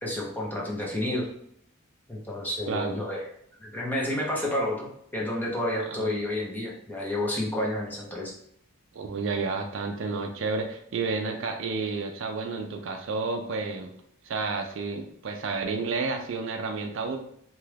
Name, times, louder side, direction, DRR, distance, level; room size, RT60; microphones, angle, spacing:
voice 1, 0.0-1.3 2.1-3.2 3.6-8.3, left 1 dB, 10° left, -3 dB, 0.6 m, -30 dB
voice 2, 8.9-13.9 14.2-17.2, right 4 dB, 60° right, 4 dB, 0.4 m, -31 dB
2.9 x 2.4 x 3.2 m, 0.69 s
head